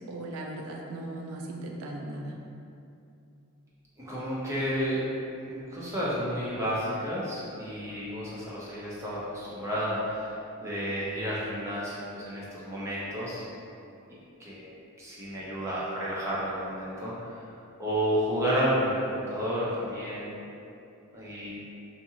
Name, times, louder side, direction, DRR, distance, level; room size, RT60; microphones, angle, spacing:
voice 1, 0.1-2.4, right 1 dB, 70° right, 0 dB, 0.3 m, -37 dB
voice 2, 4.0-5.0 5.4-13.4 14.4-17.4 17.8-20.3 21.1-21.5, equal, 15° right, -8 dB, 0.5 m, -31 dB
2.5 x 2.5 x 2.7 m, 2.7 s
head